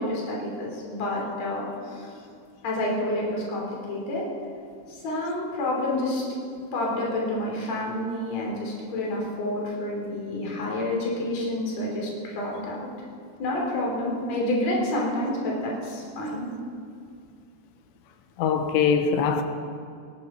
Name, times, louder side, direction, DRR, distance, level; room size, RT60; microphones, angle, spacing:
voice 1, 0.0-2.1 2.6-4.3 4.9-6.2 6.7-12.9 13.4-16.5, left 1 dB, 40° left, 3.9 m, -29 dB
voice 2, 18.4-19.4, left 6 dB, 80° left, 3.0 m, -22 dB
18.0 x 14.5 x 4.3 m
omnidirectional pair, 5.1 m